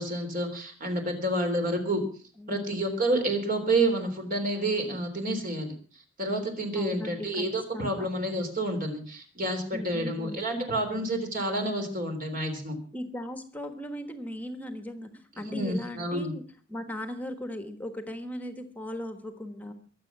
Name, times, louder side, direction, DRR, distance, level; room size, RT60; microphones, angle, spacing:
voice 1, 0.0-2.0 2.5-5.7 6.2-12.8 15.5-16.3, right 1 dB, 45° right, 5 dB, 3.6 m, -29 dB
voice 2, 6.7-7.4 7.7-8.1 9.7-10.4 12.9-16.4 16.7-19.7, left 1 dB, 10° left, 8 dB, 1.4 m, -38 dB
22.5 x 7.8 x 6.1 m, 0.42 s
head